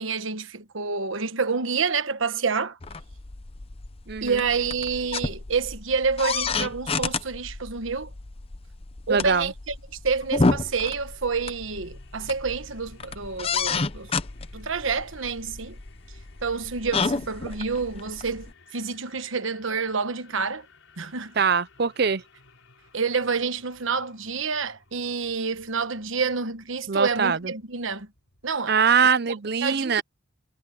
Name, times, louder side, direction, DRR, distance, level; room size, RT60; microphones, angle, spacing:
voice 1, 0.0-2.8 4.2-8.1 9.1-9.7 10.0-14.1 14.5-15.8 16.4-20.7 21.0-21.3 22.9-28.1 28.4-28.8 29.6-30.0, right 5 dB, 75° right, 1.2 m, -28 dB
sound 1, 2.8-18.5, left 4 dB, 30° left, 0.6 m, -31 dB
voice 2, 4.1-4.4 9.1-9.5 21.4-22.2 26.9-27.5 28.7-30.0, right 6 dB, 50° right, 0.6 m, -22 dB
sound 2, 10.6-28.6, left 3 dB, 75° left, 5.9 m, -56 dB
head